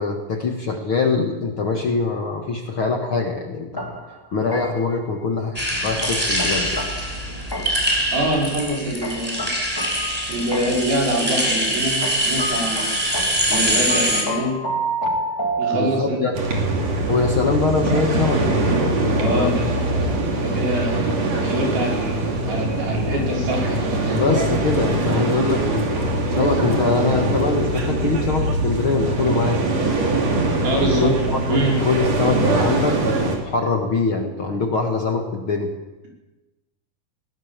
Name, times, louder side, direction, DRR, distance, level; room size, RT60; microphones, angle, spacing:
voice 1, 0.0-4.0 4.3-6.9 15.0-15.2 15.7-16.5 17.1-18.5 19.0-19.7 24.1-29.6 30.8-35.7, left 4 dB, 50° left, 3 dB, 1.8 m, -23 dB
sound 1, 3.8-5.0 6.0-8.0 9.0-11.0 12.0-16.3, right 1 dB, 10° left, 1.8 m, -29 dB
sound 2, 5.6-14.2, right 1 dB, 10° right, 4.5 m, -23 dB
voice 2, 8.1-9.5 10.3-12.9 13.5-14.6 15.6-16.2 19.2-19.7 20.4-20.9 21.4-24.2 30.6-31.1 31.5-31.8, right 1 dB, 80° right, -1 dB, 7.0 m, -24 dB
sound 3, 16.3-33.4, right 2 dB, 45° right, 4.0 m, -22 dB
20.5 x 18.5 x 7.3 m, 1.1 s
omnidirectional pair, 4.2 m